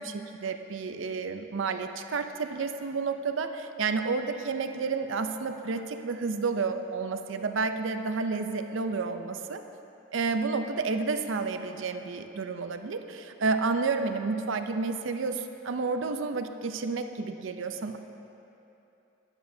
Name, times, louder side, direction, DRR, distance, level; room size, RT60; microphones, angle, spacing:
voice 1, 0.0-9.6 10.1-18.0, right 4 dB, 75° right, 8 dB, 0.5 m, -30 dB
12.0 x 9.9 x 2.7 m, 2.9 s
head